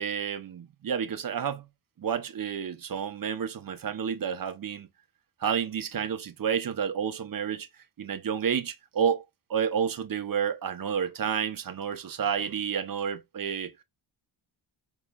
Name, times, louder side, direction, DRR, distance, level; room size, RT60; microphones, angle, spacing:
voice 1, 0.0-1.7 2.0-4.9 5.4-7.7 8.0-9.2 9.5-13.7, right 7 dB, 45° right, 0.6 m, -30 dB
5.4 x 3.0 x 2.2 m
wide cardioid pair, 165°, 49 cm